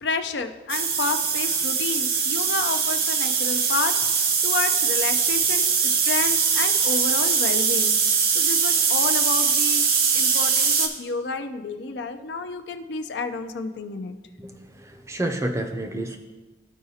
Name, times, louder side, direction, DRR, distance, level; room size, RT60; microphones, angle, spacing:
voice 1, 0.0-3.9 4.4-8.0 8.3-9.9 10.1-14.2, left 4 dB, 70° left, 8 dB, 0.5 m, -30 dB
sound 1, 0.7-10.9, right 6 dB, 50° right, 0.7 m, -22 dB
voice 2, 14.4-16.2, right 1 dB, 15° right, 5 dB, 0.5 m, -30 dB
12.5 x 4.7 x 2.8 m, 1.2 s
head